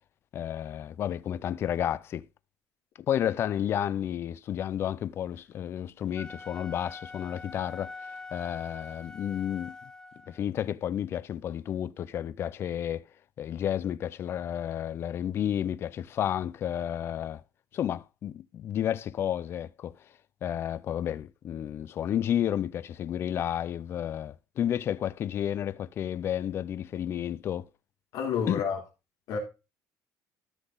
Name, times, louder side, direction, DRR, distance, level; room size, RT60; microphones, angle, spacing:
voice 1, 0.3-2.3 3.1-7.9 8.3-9.8 10.3-13.0 13.4-17.4 17.7-20.0 20.4-27.6 28.5-28.6, left 10 dB, 40° left, 0.5 m, -31 dB
Wind instrument woodwind instrument, 6.0-10.4, left 3 dB, 10° left, 1.1 m, -44 dB
voice 2, 28.1-28.8 29.3-29.4, left 7 dB, 65° left, 3.5 m, -29 dB
13.0 x 6.0 x 3.9 m
cardioid pair, 165°, 7 cm